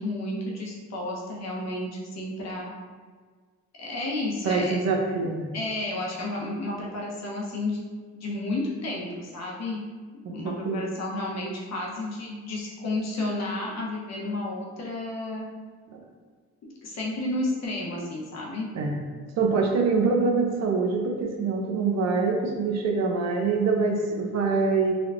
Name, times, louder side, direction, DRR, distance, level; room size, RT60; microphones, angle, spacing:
voice 1, 0.0-2.7 3.8-4.8 5.5-7.8 8.1-9.8 10.3-15.5 16.8-18.7, left 2 dB, 60° left, -3 dB, 0.9 m, -31 dB
voice 2, 4.4-5.5 10.2-10.8 15.9-16.0 18.7-19.0 19.4-25.0, right 4 dB, 60° right, 2 dB, 0.6 m, -25 dB
3.3 x 3.0 x 2.5 m, 1.5 s
cardioid pair, 90°, 30 cm